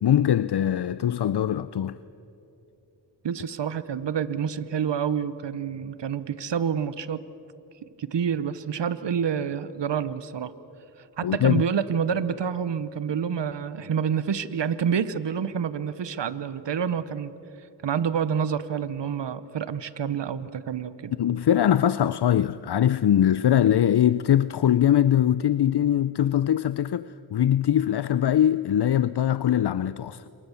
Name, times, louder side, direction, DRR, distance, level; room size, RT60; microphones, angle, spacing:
voice 1, 0.0-2.0 11.2-11.6 21.2-30.2, left 10 dB, 70° left, 0.6 m, -22 dB
voice 2, 3.2-7.2 8.0-10.5 11.2-17.3 17.8-21.1, right 7 dB, 85° right, 0.9 m, -28 dB
27.5 x 23.0 x 7.0 m
cardioid pair, 40°, 41 cm